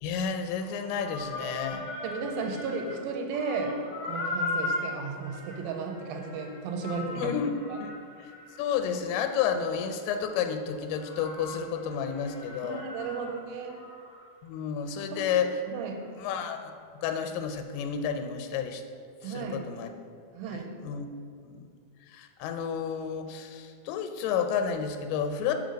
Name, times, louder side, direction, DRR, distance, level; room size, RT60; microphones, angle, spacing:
voice 1, 0.0-1.9 7.2-7.9 8.2-8.3 8.6-12.8 14.4-15.6 16.2-16.7 17.0-18.8 19.2-19.9 20.5-21.1 21.4-21.6 22.1-25.5, left 7 dB, 90° left, 6 dB, 2.5 m, -31 dB
sound 1, 0.6-3.0 3.3-10.4 10.9-14.2 14.5-14.6 15.2-15.3, left 2 dB, 65° left, 1.2 m, -38 dB
voice 2, 1.7-7.3 7.7-7.8 12.6-13.8 15.1-15.3 15.7-16.1 19.2-19.6 20.3-20.7, right 4 dB, 85° right, 2 dB, 2.4 m, -34 dB
5.6 x 5.4 x 5.1 m, 2.3 s
omnidirectional pair, 4.3 m